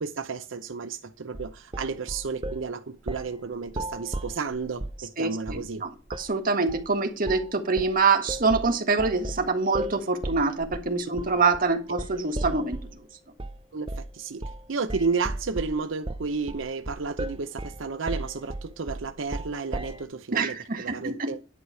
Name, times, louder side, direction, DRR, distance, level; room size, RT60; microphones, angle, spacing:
voice 1, 0.0-5.8 11.9-12.0 13.7-14.4 14.7-21.4, right 4 dB, 85° right, 0.7 m, -32 dB
sound 1, 1.3-2.7 3.1-3.3 3.7-5.0 5.5-5.7 6.1-6.3 6.7-6.9 7.3-7.5 7.8-13.0 13.4-13.6 13.9-14.1 14.4-14.6 14.9-20.0, right 1 dB, 25° right, 0.7 m, -35 dB
voice 2, 5.2-12.8 20.3-21.3, right 4 dB, 45° right, 1.7 m, -25 dB
11.0 x 4.9 x 6.9 m
head